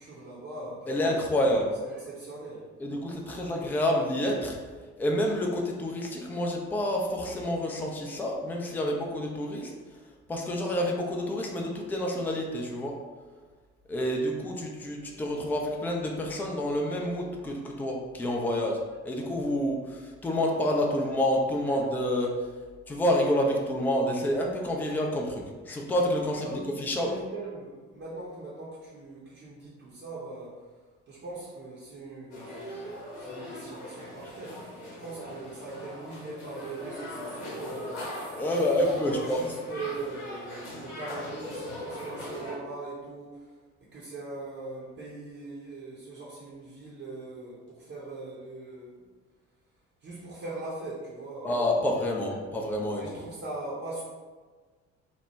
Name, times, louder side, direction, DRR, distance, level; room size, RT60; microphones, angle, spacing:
voice 1, 0.0-1.3 1.8-2.7 21.0-21.2 21.7-21.8 26.2-30.7 31.1-34.7 35.0-43.5 43.8-49.1 50.0-51.7 52.0-52.2 52.9-54.0, right 2 dB, 35° right, -6 dB, 0.7 m, -41 dB
voice 2, 0.9-1.8 2.8-4.6 5.0-9.7 10.3-13.0 13.9-18.8 19.0-22.3 22.9-26.5 26.8-27.1 38.3-39.4 51.4-53.2, left 1 dB, 5° left, 0 dB, 0.3 m, -28 dB
sound 1, 32.3-42.6, left 1 dB, 70° left, 0.8 m, -40 dB
2.9 x 2.1 x 3.2 m, 1.4 s
figure-of-eight pair, 45°, 36 cm